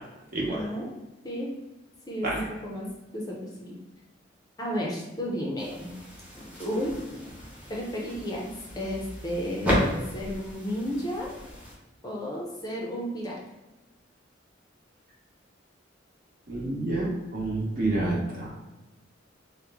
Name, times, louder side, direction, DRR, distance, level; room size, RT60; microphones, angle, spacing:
voice 1, 0.5-0.9 1.2-1.5 2.1-2.9 3.1-3.7 4.6-5.9 6.4-6.9 7.7-11.3 12.0-13.4, equal, 20° left, -3 dB, 0.5 m, -33 dB
sound 1, 5.6-11.7, equal, 10° right, 0.8 m, -34 dB
voice 2, 16.5-18.5, right 2 dB, 50° right, -4 dB, 1.0 m, -28 dB
3.0 x 2.1 x 3.5 m, 1.0 s
head